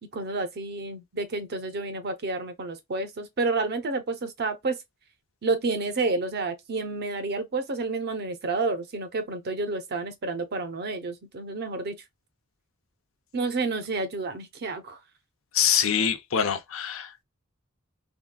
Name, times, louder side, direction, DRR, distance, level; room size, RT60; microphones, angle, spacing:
voice 1, 0.0-4.8 5.4-12.0 13.3-15.0, right 3 dB, 50° right, 0.6 m, -30 dB
voice 2, 15.5-17.2, left 8 dB, 65° left, 0.6 m, -25 dB
3.7 x 2.2 x 2.3 m
head